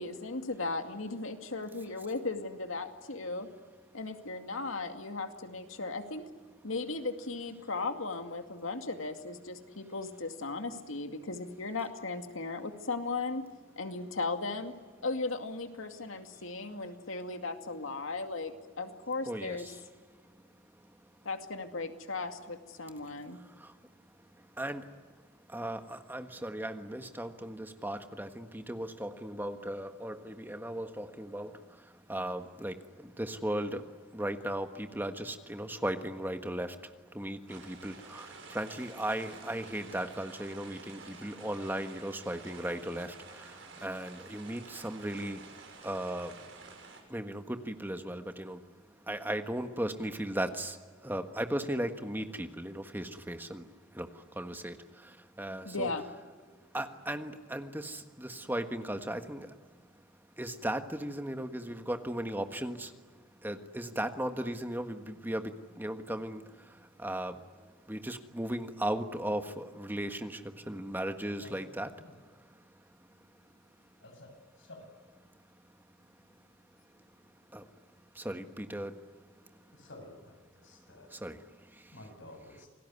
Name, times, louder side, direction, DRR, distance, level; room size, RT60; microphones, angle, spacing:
voice 1, 0.0-3.5 3.9-6.3 6.6-13.5 13.8-14.7 15.0-19.7 21.2-23.4 55.6-56.0, left 3 dB, 85° left, 6 dB, 2.3 m, -36 dB
voice 2, 19.3-19.8 20.2-21.2 23.3-25.0 25.5-55.9 56.5-60.0 60.3-72.1 72.4-73.2 75.3-75.6 76.9-77.0 77.5-77.9 78.1-79.8 80.8-82.1, right 1 dB, 10° right, 7 dB, 1.4 m, -38 dB
sound 1, 37.5-47.0, right 4 dB, 70° right, 6.2 m, -50 dB
voice 3, 79.7-80.4 80.6-81.1 81.9-82.7, left 1 dB, 70° left, 4 dB, 7.8 m, -51 dB
28.0 x 19.5 x 9.6 m, 1.5 s
head